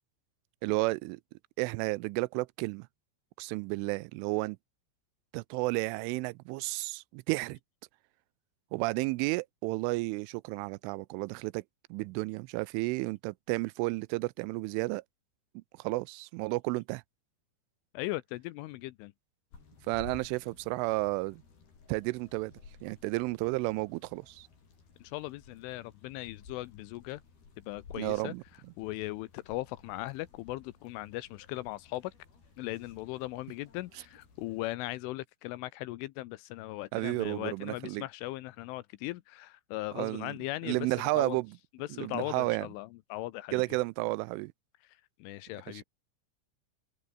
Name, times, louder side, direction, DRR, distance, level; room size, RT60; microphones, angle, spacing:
voice 1, 0.6-1.2 1.6-2.9 3.4-4.6 5.3-7.6 8.7-11.6 11.9-15.0 15.6-17.0 19.9-21.4 21.9-22.5 22.8-24.5 28.0-28.4 36.9-38.1 39.9-40.3 40.7-41.5 41.9-42.7 43.5-44.5, right 24 dB, 85° right, 3.0 m, -32 dB
voice 2, 17.9-19.1 25.0-27.2 27.7-28.3 28.8-32.1 32.6-41.4 41.8-43.6 45.2-45.8, left 18 dB, 85° left, 3.3 m, -38 dB
sound 1, 19.5-34.8, left 5 dB, 50° left, 7.9 m, -55 dB
open air
omnidirectional pair, 5.7 m